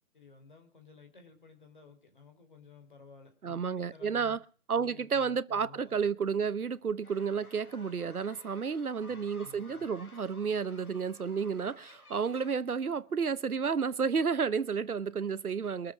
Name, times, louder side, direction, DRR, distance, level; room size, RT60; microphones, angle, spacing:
voice 1, 0.1-4.4 4.7-6.1 9.0-10.0, left 4 dB, 35° left, 4.1 m, -55 dB
voice 2, 3.4-4.4 4.7-15.9, right 6 dB, 85° right, 1.1 m, -31 dB
sound 1, 7.0-12.6, left 2 dB, 75° left, 4.6 m, -55 dB
23.5 x 7.8 x 6.2 m
hypercardioid pair, 180°, 43 cm